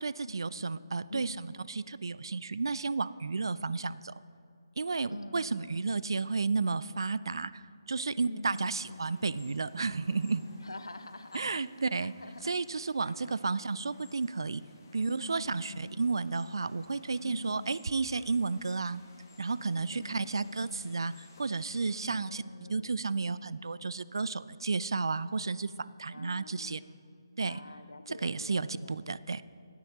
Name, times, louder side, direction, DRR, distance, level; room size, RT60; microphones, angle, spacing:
voice 1, 0.0-4.1 4.8-7.6 7.9-10.5 11.3-12.1 12.4-14.6 14.9-19.0 19.4-22.4 22.7-26.8 27.4-27.6 28.1-29.4, right 4 dB, 70° right, 18 dB, 0.3 m, -32 dB
voice 2, 1.1-1.5 5.1-5.9 8.2-9.1 10.6-11.6 12.0-12.6 13.0-13.4 15.0-16.1 17.2-17.8 19.9-21.0 22.0-23.1 26.1-27.0 27.4-29.2, left 2 dB, 80° left, 10 dB, 0.7 m, -46 dB
sound 1, 8.5-22.2, left 3 dB, 45° left, 1.8 m, -59 dB
17.5 x 9.6 x 3.0 m, 2.4 s
figure-of-eight pair, 145°, 2 cm